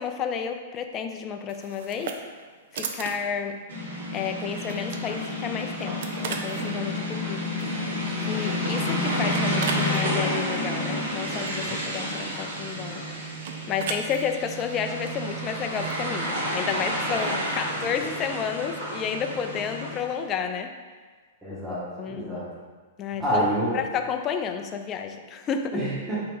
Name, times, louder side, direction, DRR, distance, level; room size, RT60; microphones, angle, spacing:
voice 1, 0.0-2.2 2.7-3.6 4.1-7.5 8.2-13.0 13.7-20.7 22.0-22.4 23.0-23.4 23.7-25.8, left 7 dB, 30° left, 6 dB, 0.3 m, -31 dB
sound 1, 1.5-18.0, right 5 dB, 60° right, 0.4 m, -40 dB
sound 2, 3.7-20.1, left 1 dB, 80° right, 1.4 m, -30 dB
voice 2, 21.4-22.5 23.2-23.8 25.7-26.2, right 1 dB, 5° right, -10 dB, 1.0 m, -27 dB
4.1 x 2.8 x 3.5 m, 1.5 s
hypercardioid pair, 115°, 0 cm